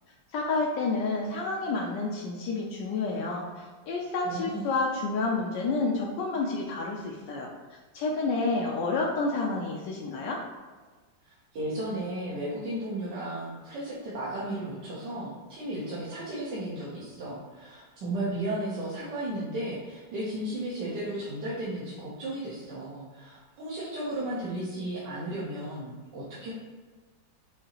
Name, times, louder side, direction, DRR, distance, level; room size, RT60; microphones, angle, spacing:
voice 1, 0.3-7.5 7.9-10.4, left 3 dB, 80° left, -3 dB, 1.2 m, -29 dB
voice 2, 4.2-4.6 11.5-26.5, right 1 dB, 75° right, -8 dB, 1.6 m, -34 dB
6.4 x 2.8 x 2.9 m, 1.4 s
omnidirectional pair, 2.0 m